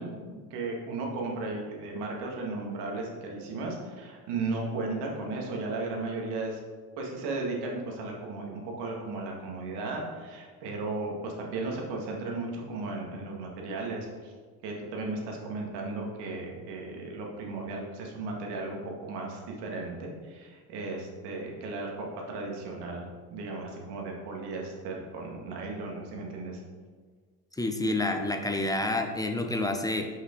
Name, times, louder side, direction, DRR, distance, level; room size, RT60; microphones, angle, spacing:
voice 1, 0.0-6.6 7.0-14.3 14.6-26.6, right 3 dB, 65° right, 0 dB, 1.8 m, -35 dB
voice 2, 27.6-30.1, left 2 dB, 10° left, 4 dB, 0.5 m, -28 dB
5.8 x 5.7 x 3.8 m, 1.5 s
supercardioid pair, 90°, 43 cm